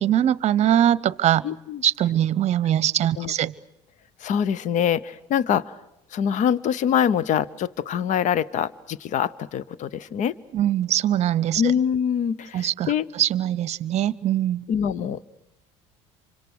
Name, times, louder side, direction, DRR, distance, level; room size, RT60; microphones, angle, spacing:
voice 1, 0.0-1.4 1.8-3.5 10.5-11.7 12.5-14.6, right 11 dB, 45° right, 20 dB, 0.9 m, -22 dB
voice 2, 1.4-1.8 3.2-3.3 4.2-5.8 6.1-10.4 11.6-13.1 14.7-15.2, left 8 dB, 50° left, 21 dB, 0.8 m, -24 dB
27.5 x 25.0 x 6.4 m, 0.90 s
supercardioid pair, 85°, 16 cm